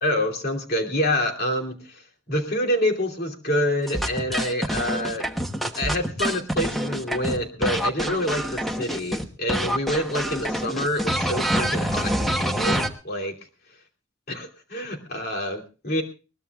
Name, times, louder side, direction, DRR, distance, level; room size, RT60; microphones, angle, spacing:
voice 1, 0.0-2.0 2.3-5.2 5.7-13.4 14.3-16.0, left 1 dB, 55° left, 1 dB, 2.9 m, -27 dB
sound 1, 3.9-9.2 9.5-12.9, equal, ahead, 1.1 m, -26 dB
21.5 x 19.0 x 2.4 m, 0.34 s
head